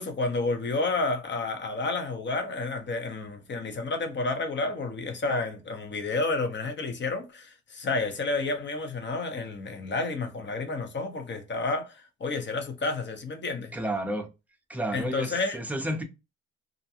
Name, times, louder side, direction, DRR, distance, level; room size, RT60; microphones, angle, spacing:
voice 1, 0.0-13.7 14.9-15.6, left 3 dB, 35° left, 0.8 m, -30 dB
voice 2, 13.7-14.3 14.7-16.0, right 1 dB, 5° right, 0.6 m, -31 dB
2.5 x 2.2 x 2.7 m
cardioid pair, 90°, 30 cm